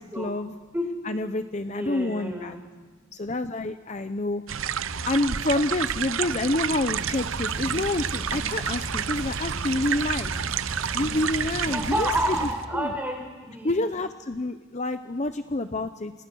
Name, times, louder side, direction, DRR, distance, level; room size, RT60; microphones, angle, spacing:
voice 1, 0.2-0.6 1.0-2.6 3.1-4.4 5.1-10.3 10.9-12.4 12.7-12.9 13.6-16.1, left 2 dB, 35° left, 10 dB, 0.7 m, -28 dB
voice 2, 1.7-2.6 11.7-13.8, right 1 dB, 10° right, 2 dB, 4.9 m, -29 dB
sound 1, 4.5-12.6, right 8 dB, 85° right, 0.7 m, -30 dB
sound 2, 6.9-12.5, right 1 dB, 60° right, 3.2 m, -36 dB
29.0 x 27.5 x 6.3 m, 1.4 s
head